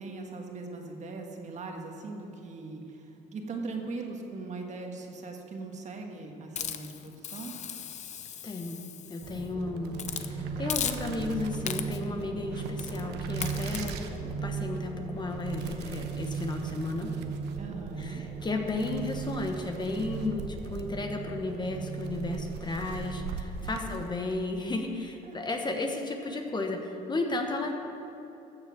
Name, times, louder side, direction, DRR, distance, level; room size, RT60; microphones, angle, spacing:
voice 1, 0.0-7.6 17.6-18.2 23.6-23.8 25.2-25.4, right 3 dB, 45° right, 2 dB, 1.7 m, -40 dB
Hiss, 6.6-9.4 10.0-10.3 10.7-11.3 11.7-12.1 12.8-13.0 13.4-13.9, left 8 dB, 45° left, 0.6 m, -37 dB
voice 2, 8.4-8.8 9.1-17.2 18.0-27.8, left 2 dB, 25° left, 3 dB, 1.2 m, -33 dB
sound 1, 9.2-23.3, right 5 dB, 30° right, 1.3 m, -37 dB
sound 2, 9.5-24.4, right 5 dB, 80° right, 1.0 m, -43 dB
14.0 x 7.3 x 6.2 m, 3.0 s
cardioid pair, 110°, 17 cm